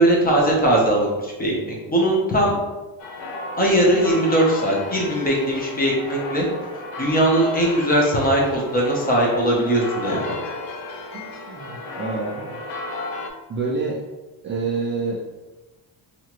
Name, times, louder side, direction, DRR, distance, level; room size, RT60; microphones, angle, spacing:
voice 1, 0.0-2.6 3.5-6.5 7.0-10.2, right 1 dB, 20° left, -2 dB, 0.7 m, -20 dB
sound 1, 3.0-13.3, left 2 dB, 80° left, 0.6 m, -33 dB
voice 2, 11.1-12.6 13.5-14.0 14.4-15.2, right 4 dB, 30° right, -4 dB, 0.4 m, -27 dB
2.8 x 2.5 x 2.9 m, 1.1 s
cardioid pair, 125°, 45 cm